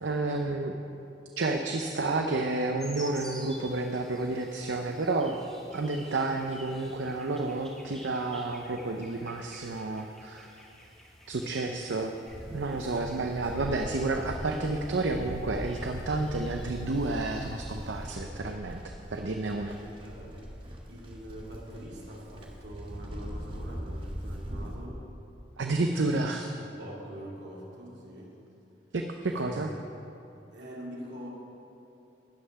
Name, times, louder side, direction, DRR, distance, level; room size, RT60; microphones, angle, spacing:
voice 1, 0.0-0.7 1.4-5.3 5.7-10.5 11.3-12.1 12.5-19.8 25.6-26.5 28.9-29.7, right 2 dB, 85° right, 3 dB, 0.7 m, -30 dB
sound 1, 2.8-18.2, equal, 5° left, 1.7 m, -51 dB
Livestock farm animals working animals, 12.3-24.7, equal, 30° right, 1.5 m, -41 dB
voice 2, 19.7-20.5 20.9-25.1 26.8-28.5 29.3-29.8 30.5-31.3, equal, 70° right, -4 dB, 2.7 m, -44 dB
13.0 x 5.7 x 9.2 m, 2.8 s
head